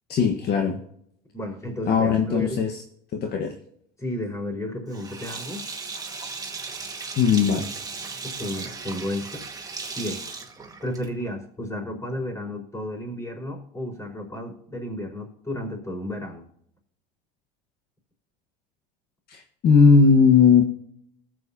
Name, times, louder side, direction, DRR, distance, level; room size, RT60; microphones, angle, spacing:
voice 1, 0.1-0.8 1.8-2.7 3.1-3.5 7.2-7.6 19.3-20.6, left 5 dB, 50° left, 3 dB, 1.4 m, -18 dB
voice 2, 1.3-2.6 4.0-5.7 8.2-9.4 9.9-10.2 10.8-16.5, left 1 dB, 15° left, 1 dB, 4.8 m, -32 dB
Sink (filling or washing), 4.9-11.3, right 4 dB, 20° right, 2.0 m, -36 dB
19.5 x 7.8 x 2.9 m, 0.72 s
supercardioid pair, 90°, 21 cm